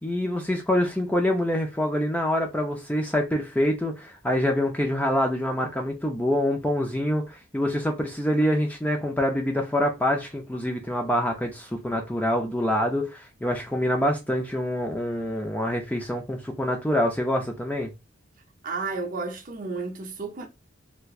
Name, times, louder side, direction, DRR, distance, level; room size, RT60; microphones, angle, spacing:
voice 1, 0.0-17.9, left 1 dB, 10° left, 0.4 m, -26 dB
voice 2, 18.6-20.5, right 4 dB, 40° right, 0.6 m, -32 dB
3.3 x 2.9 x 2.4 m
head